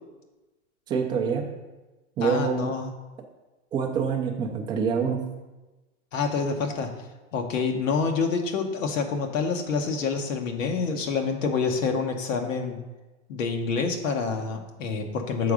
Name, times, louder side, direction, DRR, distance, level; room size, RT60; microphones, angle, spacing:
voice 1, 0.9-1.5 2.2-2.7 3.7-5.2, right 6 dB, 15° right, 2 dB, 0.4 m, -26 dB
voice 2, 2.2-2.9 6.1-6.9 7.3-12.8 13.3-15.5, left 5 dB, 85° left, 3 dB, 1.1 m, -27 dB
6.8 x 3.6 x 4.9 m, 1.1 s
supercardioid pair, 145°, 38 cm